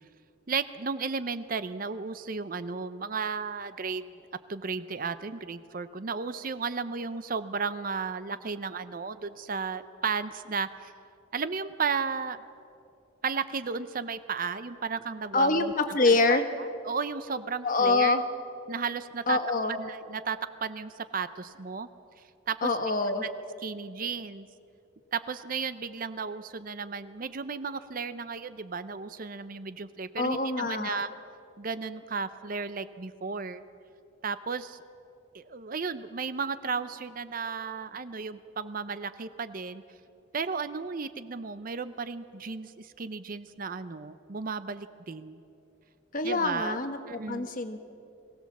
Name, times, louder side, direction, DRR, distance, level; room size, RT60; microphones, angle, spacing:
voice 1, 0.5-4.0 4.5-10.9 11.3-12.4 13.2-15.7 16.1-18.2 18.7-19.4 19.8-21.9 22.5-22.7 23.2-23.3 23.6-24.5 25.1-31.1 31.6-33.6 34.2-34.8 35.3-39.8 40.3-45.4 46.2-46.8 47.1-47.5, right 5 dB, 45° right, 12 dB, 0.6 m, -34 dB
voice 2, 15.3-16.4 17.6-18.2 19.3-19.8 22.6-23.2 30.2-31.0 46.1-47.9, left 3 dB, 40° left, 7 dB, 1.3 m, -25 dB
22.5 x 16.5 x 7.3 m, 2.6 s
head